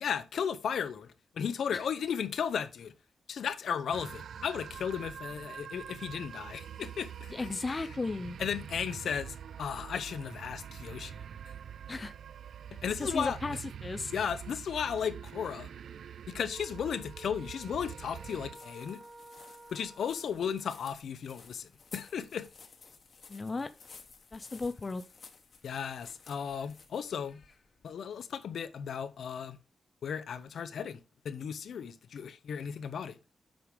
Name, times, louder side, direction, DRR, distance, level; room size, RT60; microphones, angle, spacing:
voice 1, 0.0-2.9 3.3-7.3 8.4-11.2 12.8-13.4 14.1-15.7 16.3-19.0 19.7-22.5 25.6-27.4 27.8-29.6 30.0-33.2, left 7 dB, 70° left, 0.8 m, -35 dB
sound 1, 3.9-18.5, right 8 dB, 70° right, 0.3 m, -45 dB
voice 2, 7.3-8.4 11.9-12.1 13.0-14.1 23.3-23.7 24.3-25.0, left 3 dB, 25° left, 0.5 m, -35 dB
sound 2, 16.5-20.9, right 2 dB, 30° right, 0.8 m, -53 dB
sound 3, 18.0-27.9, left 5 dB, 40° left, 1.2 m, -55 dB
7.8 x 5.0 x 5.1 m
wide cardioid pair, 180°, 0 cm